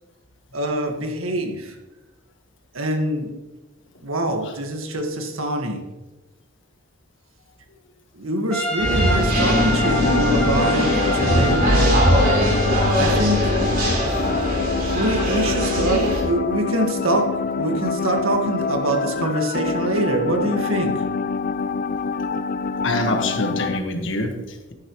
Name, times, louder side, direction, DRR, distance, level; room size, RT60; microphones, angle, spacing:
voice 1, 0.5-1.8 2.7-3.3 4.0-5.9 8.1-12.2 13.0-13.5 14.8-21.1, right 1 dB, 85° right, 3 dB, 1.8 m, -24 dB
Trumpet, 8.5-12.9, right 1 dB, 5° left, 1.7 m, -28 dB
sound 1, 8.8-16.2, equal, 45° right, 3.4 m, -20 dB
sound 2, 9.3-23.8, left 5 dB, 45° left, 0.4 m, -26 dB
voice 2, 22.8-24.7, left 2 dB, 60° left, 4 dB, 1.6 m, -25 dB
14.0 x 10.5 x 3.2 m, 1.1 s
head